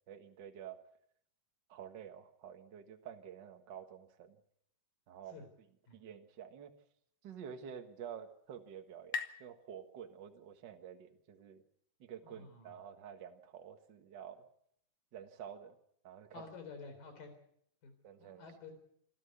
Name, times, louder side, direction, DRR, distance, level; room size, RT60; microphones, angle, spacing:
voice 1, 0.1-0.8 1.7-4.4 5.1-5.4 5.9-6.7 7.2-11.6 12.0-14.4 15.1-15.7 16.0-16.4 18.0-18.4, right 8 dB, 60° right, 6 dB, 1.1 m, -49 dB
sound 1, 7.7-11.0, left 6 dB, 85° left, 1.4 m, -47 dB
voice 2, 12.2-12.7 16.3-17.3 17.8-17.9 18.2-18.7, left 4 dB, 60° left, 7 dB, 5.5 m, -50 dB
27.0 x 12.5 x 8.2 m, 0.71 s
omnidirectional pair, 4.5 m